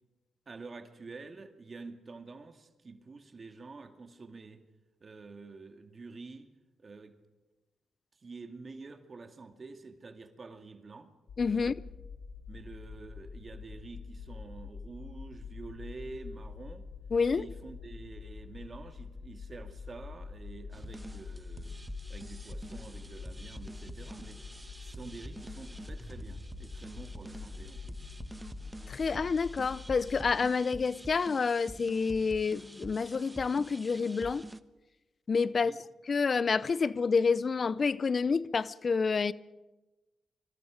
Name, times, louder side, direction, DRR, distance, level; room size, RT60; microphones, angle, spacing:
voice 1, 0.5-4.6 5.0-6.5 6.8-7.2 8.2-11.1 11.5-11.7 12.5-16.9 17.3-21.7 22.1-24.4 24.8-28.1 35.6-35.8, right 3 dB, 50° right, 2.4 m, -48 dB
sound 1, 11.3-30.5, left 5 dB, 75° left, 1.8 m, -45 dB
voice 2, 11.4-11.7 17.1-17.5 28.9-34.5 35.3-35.7 36.1-39.3, left 5 dB, 55° left, 0.6 m, -28 dB
sound 2, 20.7-34.6, right 1 dB, 15° right, 1.2 m, -47 dB
26.0 x 25.5 x 5.1 m
supercardioid pair, 45°, 0 cm